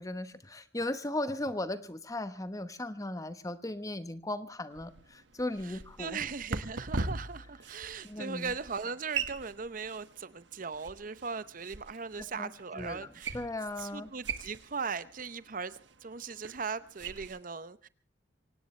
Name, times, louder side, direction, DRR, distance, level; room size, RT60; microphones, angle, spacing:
voice 1, 0.0-6.2 8.0-8.5 12.2-12.5 12.7-14.1, left 1 dB, 20° left, 1.1 m, -37 dB
sound 1, 4.7-17.4, right 4 dB, 70° right, 1.6 m, -42 dB
voice 2, 5.6-13.4 13.8-17.9, right 5 dB, 45° right, 0.8 m, -39 dB
25.0 x 18.0 x 3.3 m
head